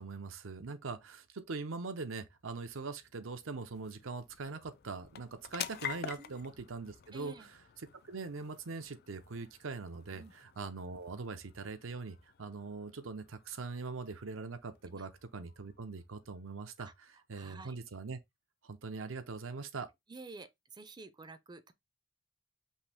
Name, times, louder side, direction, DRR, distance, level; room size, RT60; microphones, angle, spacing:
voice 1, 0.0-7.3 8.0-16.9 17.3-18.2 18.6-19.9, right 4 dB, 80° right, 0.7 m, -42 dB
sound 1, 2.1-17.0, left 9 dB, 55° left, 0.4 m, -50 dB
voice 2, 7.1-7.5 10.1-10.3 14.9-15.1 16.8-17.8 20.1-21.7, right 3 dB, 20° right, 0.5 m, -51 dB
5.5 x 2.7 x 3.4 m
head